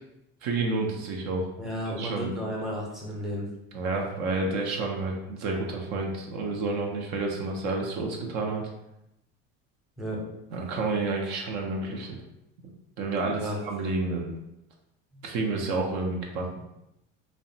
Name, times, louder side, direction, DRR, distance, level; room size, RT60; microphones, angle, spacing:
voice 1, 0.4-1.5 1.8-2.3 3.7-8.6 10.5-12.2 13.0-14.4 15.2-16.5, right 3 dB, 65° right, 1 dB, 0.6 m, -30 dB
voice 2, 1.6-3.5 10.0-10.2 13.3-13.6 15.1-15.2, equal, ahead, -3 dB, 0.7 m, -33 dB
2.6 x 2.1 x 2.6 m, 0.85 s
supercardioid pair, 90°, 31 cm